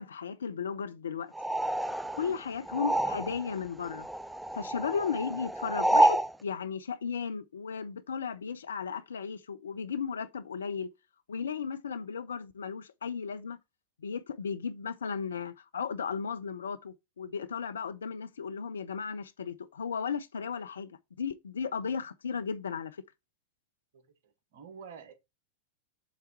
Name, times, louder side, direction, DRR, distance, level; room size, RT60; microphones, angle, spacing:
voice 1, 0.0-1.3 2.1-4.1 4.5-10.9 11.3-13.6 14.0-20.9 21.2-23.0, left 6 dB, 70° left, 0.4 m, -35 dB
sound 1, 1.3-3.6 3.8-6.3, right 1 dB, 5° right, 0.4 m, -28 dB
voice 2, 23.9-25.1, right 6 dB, 55° right, 1.1 m, -49 dB
7.2 x 3.4 x 4.6 m
figure-of-eight pair, 90°, 0 cm